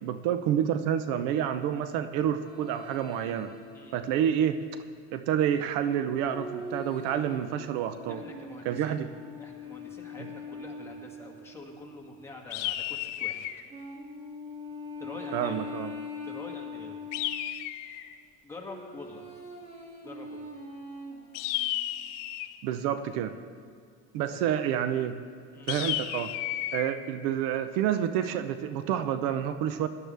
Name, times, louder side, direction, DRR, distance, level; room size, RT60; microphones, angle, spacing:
voice 1, 0.0-3.5 3.9-4.6 5.1-8.2 8.7-9.1 15.3-15.9 22.6-23.4 24.1-25.2 25.7-26.3 26.7-29.9, right 9 dB, 75° right, 10 dB, 0.7 m, -28 dB
sound 1, 2.4-4.7 6.3-12.3 13.7-17.7 18.6-21.7, left 2 dB, 20° right, 2.6 m, -43 dB
voice 2, 8.1-9.0 9.4-13.4 15.0-15.7 16.2-17.0 18.4-19.2 20.0-20.5 24.3-24.6 25.5-25.7, left 3 dB, 10° left, -2 dB, 2.1 m, -46 dB
sound 2, 12.5-13.7 17.1-18.1 21.3-22.6 25.7-26.9, left 14 dB, 75° left, 0.7 m, -33 dB
18.0 x 12.0 x 3.4 m, 2.1 s
supercardioid pair, 120°, 33 cm